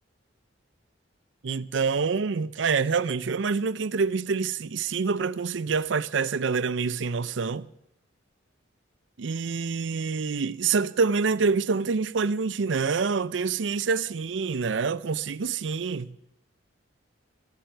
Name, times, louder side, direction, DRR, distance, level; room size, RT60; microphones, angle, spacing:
voice 1, 1.4-7.7 9.2-16.1, right 5 dB, 75° right, 0.5 m, -26 dB
18.0 x 15.5 x 4.5 m
head